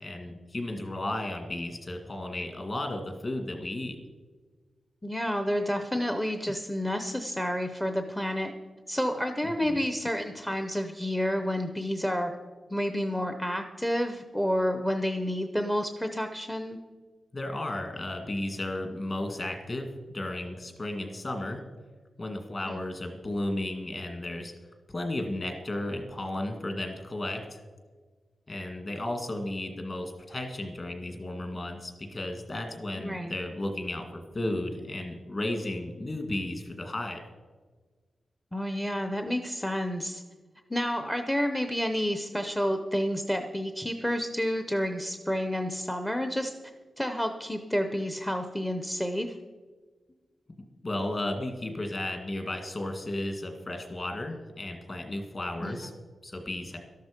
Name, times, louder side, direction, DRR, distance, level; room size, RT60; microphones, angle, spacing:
voice 1, 0.0-4.0 9.4-9.8 17.3-21.6 22.2-24.5 24.9-27.6 28.5-34.0 34.3-37.2 50.6-55.9 56.2-56.8, left 1 dB, 30° left, 4 dB, 2.0 m, -34 dB
voice 2, 5.0-8.5 8.9-12.3 12.7-16.8 22.7-22.8 33.0-33.3 38.5-40.2 40.7-46.5 47.0-49.3 55.6-55.8, equal, 5° left, 6 dB, 0.7 m, -30 dB
13.0 x 12.0 x 5.2 m, 1.4 s
wide cardioid pair, 155°, 0 cm